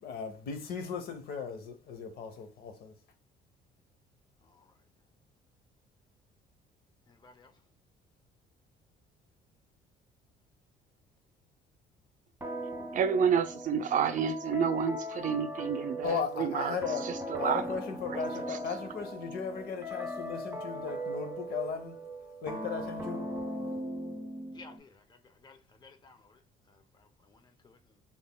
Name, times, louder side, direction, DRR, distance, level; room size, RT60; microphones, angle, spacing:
voice 1, 0.0-2.9 16.0-17.1 17.4-22.0 22.4-23.2, left 6 dB, 65° left, 0.8 m, -37 dB
sound 1, 12.4-24.8, equal, 10° right, 1.5 m, -39 dB
voice 2, 12.9-16.8 17.0-17.6 18.1-18.2, right 7 dB, 50° right, 0.5 m, -29 dB
voice 3, 24.5-25.0 25.4-26.4 27.3-27.4 27.6-27.8, left 4 dB, 25° left, 0.6 m, -54 dB
3.5 x 3.4 x 2.3 m
cardioid pair, 110°, 17 cm